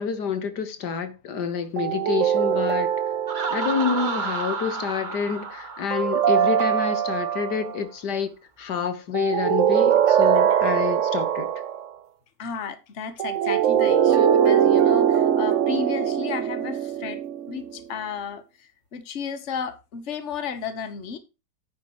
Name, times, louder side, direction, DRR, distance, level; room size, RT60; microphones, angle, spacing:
voice 1, 0.0-2.9 3.5-8.3 8.6-11.5, left 6 dB, 85° left, 1.9 m, -28 dB
sound 1, 1.8-4.2 5.9-7.7 9.1-11.9 13.2-17.7, right 9 dB, 55° right, 1.0 m, -22 dB
Laughter, 3.3-7.0, right 4 dB, 35° right, 1.1 m, -32 dB
voice 2, 12.4-17.2 17.5-21.2, left 6 dB, 45° left, 1.5 m, -33 dB
10.0 x 9.6 x 3.1 m
omnidirectional pair, 1.7 m